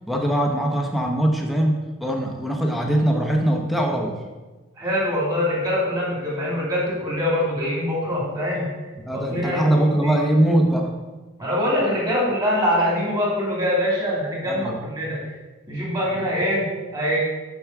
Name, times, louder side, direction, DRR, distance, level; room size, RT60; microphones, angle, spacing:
voice 1, 0.1-4.2 9.1-10.9 14.4-14.7, right 1 dB, ahead, 1 dB, 0.8 m, -21 dB
voice 2, 4.8-8.7 9.1-10.1 11.4-15.3 15.7-17.2, equal, 20° right, -4 dB, 2.6 m, -24 dB
7.1 x 6.1 x 5.9 m, 1.2 s
head